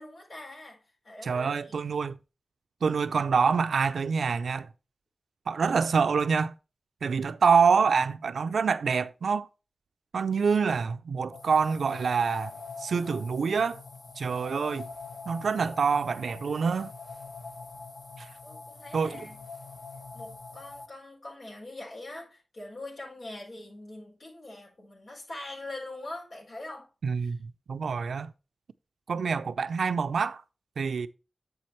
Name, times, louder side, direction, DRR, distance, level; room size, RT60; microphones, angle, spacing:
voice 1, 0.0-1.8 18.4-19.4 20.1-26.9 27.1-27.3, left 2 dB, 80° left, 4.5 m, -43 dB
voice 2, 1.2-2.2 2.8-4.7 5.5-6.5 7.0-9.5 10.1-12.5 12.8-13.8 14.2-14.9 15.3-16.9 18.2-18.3 18.9-19.3 27.0-28.3 29.1-30.4 30.8-31.1, right 5 dB, 90° right, 0.5 m, -26 dB
sound 1, 11.3-20.9, left 4 dB, 55° left, 1.5 m, -44 dB
8.7 x 6.8 x 3.1 m
cardioid pair, 60°, 0 cm